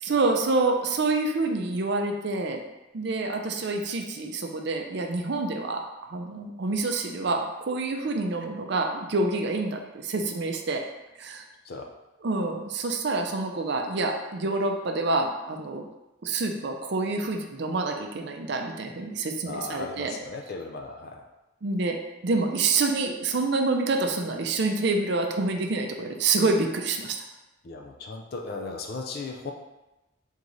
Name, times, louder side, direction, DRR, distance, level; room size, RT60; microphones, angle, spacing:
voice 1, 0.0-2.6 2.9-10.8 11.2-11.4 12.2-15.9 16.2-20.1 21.6-22.0 22.2-27.2, right 3 dB, 55° right, 3 dB, 0.5 m, -27 dB
voice 2, 19.5-21.2 27.6-29.5, left 3 dB, 50° left, 2 dB, 0.4 m, -36 dB
3.6 x 3.1 x 3.9 m, 1.0 s
head